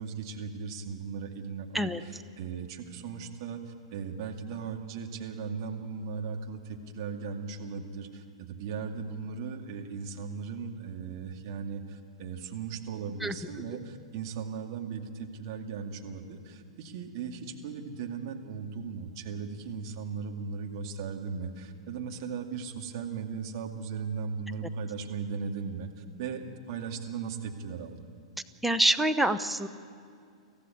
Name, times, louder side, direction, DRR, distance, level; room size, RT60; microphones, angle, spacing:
voice 1, 0.0-1.9 2.4-28.0, right 5 dB, 50° right, 2 dB, 2.3 m, -37 dB
voice 2, 28.6-29.7, right 1 dB, 5° right, 7 dB, 0.9 m, -26 dB
24.0 x 15.0 x 9.4 m, 2.3 s
figure-of-eight pair, 100°, 3 cm